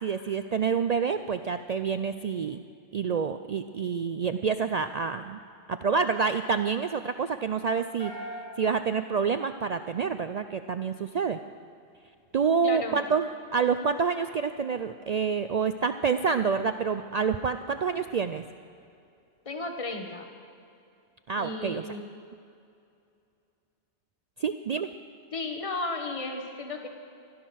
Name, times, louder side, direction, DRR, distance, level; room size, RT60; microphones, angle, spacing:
voice 1, 0.0-2.6 2.9-5.4 5.7-8.1 8.6-11.4 12.3-18.4 21.3-21.8 24.4-24.9, right 5 dB, 65° right, 9 dB, 0.4 m, -28 dB
sound 1, 8.0-10.3, right 1 dB, 65° left, 4.1 m, -43 dB
voice 2, 12.6-13.0 19.4-20.3 21.4-22.0 25.3-26.9, left 2 dB, 30° left, 4 dB, 1.3 m, -34 dB
15.5 x 12.0 x 6.3 m, 2.5 s
omnidirectional pair, 1.2 m